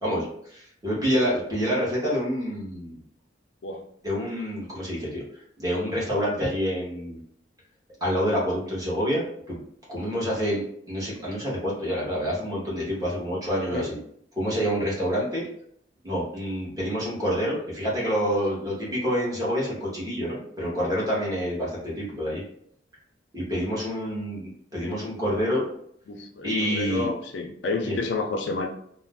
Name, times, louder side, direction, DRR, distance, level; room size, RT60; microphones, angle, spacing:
voice 1, 0.0-2.9 4.0-7.2 8.0-9.6 9.9-14.0 14.4-15.4 16.0-22.4 23.3-25.7 26.4-27.1 27.8-28.0, equal, 20° right, -6 dB, 0.9 m, -27 dB
voice 2, 26.1-28.7, left 3 dB, 65° left, 3 dB, 0.4 m, -30 dB
2.4 x 2.0 x 3.3 m, 0.66 s
head